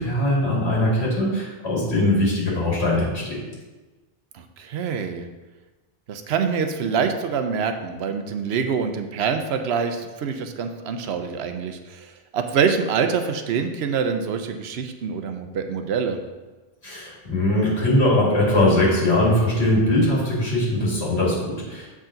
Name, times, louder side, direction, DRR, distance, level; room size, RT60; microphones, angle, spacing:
voice 1, 0.0-3.4 16.8-21.9, left 1 dB, 85° left, -5 dB, 2.4 m, -21 dB
voice 2, 4.3-5.3 6.1-12.1 12.3-16.2, right 6 dB, 85° right, 7 dB, 0.9 m, -25 dB
7.2 x 4.9 x 3.8 m, 1.2 s
omnidirectional pair, 1.1 m